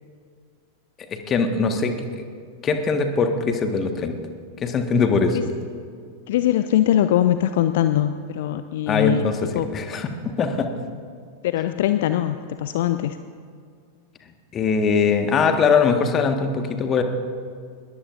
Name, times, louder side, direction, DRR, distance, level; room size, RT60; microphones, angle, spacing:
voice 1, 1.3-2.2 2.6-4.2 4.6-5.4 8.9-9.4 9.7-10.7 14.5-17.0, left 5 dB, 25° left, 6 dB, 1.4 m, -21 dB
voice 2, 6.3-9.3 9.5-9.7 11.4-13.2, left 12 dB, 55° left, 11 dB, 0.5 m, -21 dB
22.0 x 20.5 x 2.5 m, 2.1 s
figure-of-eight pair, 90°, 0 cm